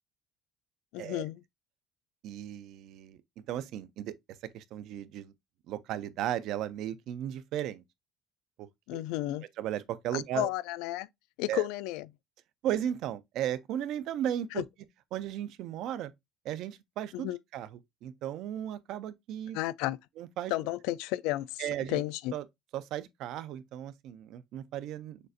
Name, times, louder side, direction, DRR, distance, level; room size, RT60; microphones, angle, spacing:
voice 1, 0.9-1.4 8.9-9.4 10.1-11.1 11.4-12.1 14.6-14.7 17.1-17.4 19.5-20.0 20.5-21.6 21.9-22.3, left 16 dB, 80° left, 0.3 m, -32 dB
voice 2, 2.2-3.2 3.5-4.1 4.5-5.3 5.7-7.8 8.6-8.7 9.6-10.5 11.5-11.7 12.6-14.6 15.1-16.1 16.4-19.6 20.2-20.5 21.6-22.0 22.3-22.4 22.7-25.2, right 11 dB, 55° right, 0.4 m, -35 dB
6.4 x 2.5 x 2.5 m
cardioid pair, 175°, 0 cm